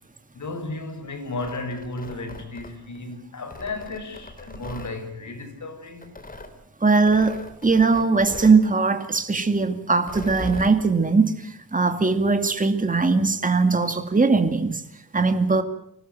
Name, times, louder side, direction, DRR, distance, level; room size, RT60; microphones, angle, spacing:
voice 1, 0.3-6.1, left 2 dB, 55° left, 6.3 m, -34 dB
Tearing, 1.2-3.0 3.5-4.9 6.0-6.5 7.1-8.6 10.0-10.8, left 2 dB, 25° left, 3.5 m, -39 dB
voice 2, 6.8-14.8 15.1-15.6, right 4 dB, 20° right, 2.3 m, -20 dB
25.5 x 18.5 x 9.4 m
wide cardioid pair, 120°, 36 cm